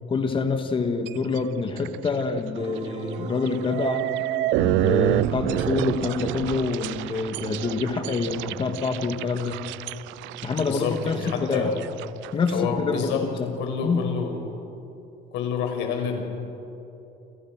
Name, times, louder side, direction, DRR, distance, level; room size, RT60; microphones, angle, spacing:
voice 1, 0.1-4.1 4.6-9.6 10.4-11.7 12.3-13.6 13.8-14.1, left 4 dB, 25° left, 6 dB, 2.1 m, -26 dB
sound 1, 1.1-1.4 1.8-2.2 2.6-2.7 3.5-12.5, right 16 dB, 80° right, 0.6 m, -28 dB
sound 2, 2.6-8.9, right 5 dB, 40° right, 3.2 m, -40 dB
voice 2, 10.6-11.8 12.5-13.3 13.6-14.3 15.3-16.3, left 6 dB, 90° left, 3 dB, 6.0 m, -28 dB
29.5 x 28.5 x 6.3 m, 2.8 s
cardioid pair, 155°, 19 cm